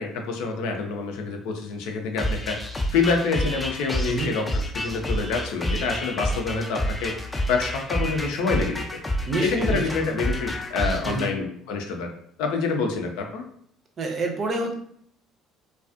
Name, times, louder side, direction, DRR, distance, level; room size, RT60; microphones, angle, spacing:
voice 1, 0.0-2.6 2.9-7.1 7.5-9.0 9.4-12.1 12.4-13.4, left 4 dB, 70° left, 3 dB, 0.5 m, -27 dB
sound 1, 2.2-11.3, equal, 15° left, 0.5 m, -29 dB
voice 2, 9.3-9.8 11.0-11.3 14.0-14.7, right 3 dB, 45° right, 3 dB, 0.6 m, -27 dB
2.4 x 2.3 x 2.4 m, 0.65 s
hypercardioid pair, 60°, 0 cm